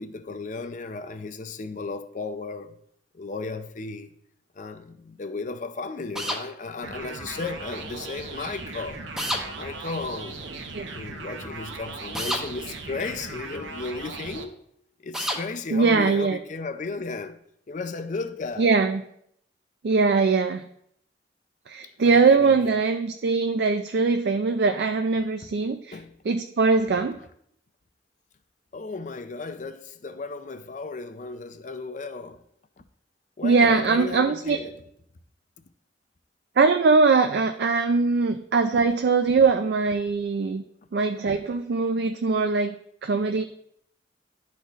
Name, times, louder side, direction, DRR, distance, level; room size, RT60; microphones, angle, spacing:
voice 1, 0.0-2.7 3.1-4.1 4.6-9.0 9.6-10.4 10.7-14.6 15.0-17.4 17.7-18.7 22.0-22.7 25.9-26.2 28.7-32.4 33.4-34.8, left 3 dB, 40° left, 0.5 m, -35 dB
sound 1, 6.2-6.4 9.2-9.4 12.1-12.4 15.1-15.4, equal, 5° right, 0.7 m, -28 dB
sound 2, 6.8-14.4, right 3 dB, 80° right, 0.8 m, -38 dB
voice 2, 15.7-16.4 18.6-19.0 19.8-20.6 21.7-26.0 26.3-27.2 33.4-34.6 36.6-40.6 40.9-42.7 43.0-43.4, right 4 dB, 60° right, 0.4 m, -21 dB
11.5 x 4.1 x 3.0 m
head